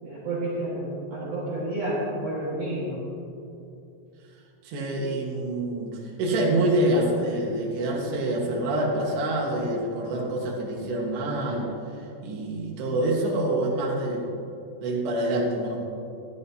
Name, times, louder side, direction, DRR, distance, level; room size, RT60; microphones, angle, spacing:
voice 1, 0.0-3.1, right 1 dB, 55° right, -7 dB, 2.0 m, -30 dB
voice 2, 4.7-5.9 6.2-11.7 12.2-14.2 14.8-15.8, right 1 dB, 75° right, -3 dB, 3.6 m, -26 dB
13.0 x 12.5 x 2.8 m, 2.7 s
omnidirectional pair, 5.0 m